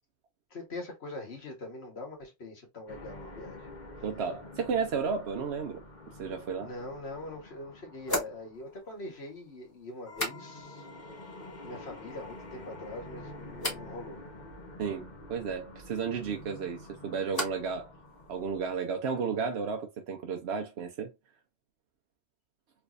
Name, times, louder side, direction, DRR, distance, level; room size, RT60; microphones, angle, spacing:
voice 1, 0.5-3.6 4.0-4.1 6.6-10.9 11.6-14.2, left 2 dB, 70° left, 1.6 m, -43 dB
sound 1, 2.9-9.7 10.0-18.8, left 1 dB, 45° left, 1.2 m, -48 dB
voice 2, 4.0-5.8 6.2-6.7 14.8-17.9 18.3-21.1, right 5 dB, 75° right, 0.9 m, -33 dB
sound 2, 6.8-6.9 8.0-10.9 11.1-11.8 12.1-12.7 13.6-13.9 16.3-17.8 18.0-18.7, left 1 dB, 20° left, 1.8 m, -39 dB
3.4 x 3.1 x 2.5 m
omnidirectional pair, 1.1 m